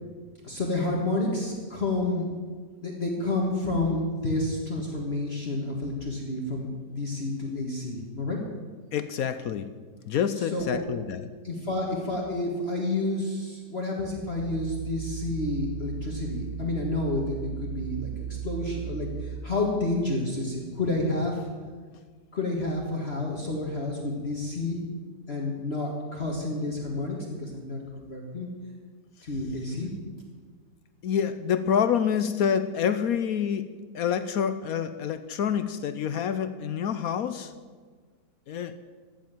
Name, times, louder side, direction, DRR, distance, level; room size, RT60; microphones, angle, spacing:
voice 1, 0.4-2.3 2.8-8.4 10.5-10.8 11.4-21.5 22.3-24.8 25.3-28.5 29.2-30.0, left 2 dB, 40° left, -1 dB, 2.0 m, -30 dB
voice 2, 8.9-9.7 10.1-11.3 31.0-37.5 38.5-38.8, left 8 dB, 65° left, 12 dB, 1.0 m, -27 dB
sound 1, 14.4-19.4, right 8 dB, 85° right, 1.9 m, -36 dB
15.0 x 7.6 x 9.0 m, 1.5 s
omnidirectional pair, 1.8 m